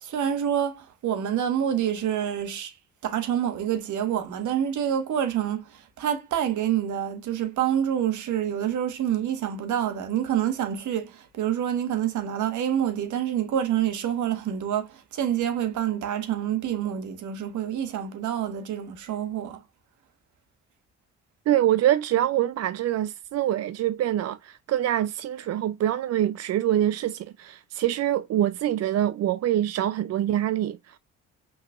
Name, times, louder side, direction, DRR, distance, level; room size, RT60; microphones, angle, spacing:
voice 1, 0.0-2.7 3.0-5.6 6.0-19.6, right 10 dB, 75° right, 1.4 m, -27 dB
voice 2, 21.5-31.0, right 12 dB, 55° right, 0.4 m, -25 dB
5.7 x 3.9 x 2.4 m
cardioid pair, 90°, 30 cm